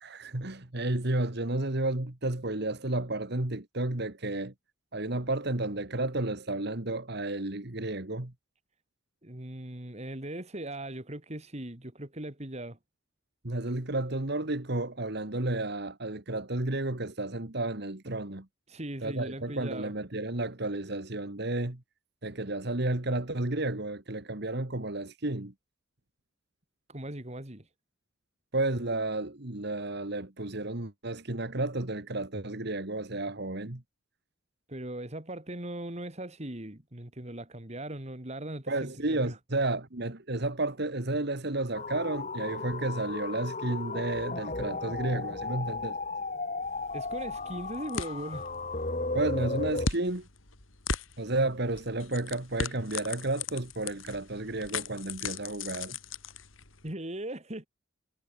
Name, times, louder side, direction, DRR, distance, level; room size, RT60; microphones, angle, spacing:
voice 1, 0.0-4.5 4.9-8.3 13.4-18.5 19.0-21.8 22.2-25.5 28.5-33.8 38.7-46.0 49.1-50.3 51.2-56.0, right 2 dB, 55° right, 2.0 m, -32 dB
voice 2, 9.2-12.8 18.7-19.9 26.9-27.7 34.7-39.4 46.9-48.5 56.8-57.7, right 1 dB, 30° right, 2.5 m, -39 dB
sound 1, 41.7-49.9, left 3 dB, 35° left, 2.9 m, -35 dB
sound 2, 46.6-56.9, left 4 dB, 75° left, 4.0 m, -39 dB
head